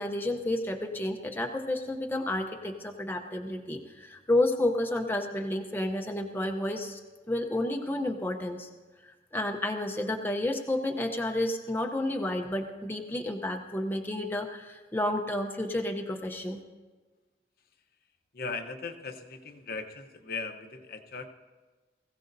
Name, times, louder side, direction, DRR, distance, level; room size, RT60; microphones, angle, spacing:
voice 1, 0.0-7.0 7.3-8.7 9.0-16.6, left 1 dB, 10° left, 3 dB, 0.7 m, -31 dB
voice 2, 18.3-21.3, left 4 dB, 55° left, 5 dB, 0.9 m, -38 dB
21.0 x 15.5 x 2.7 m, 1.3 s
head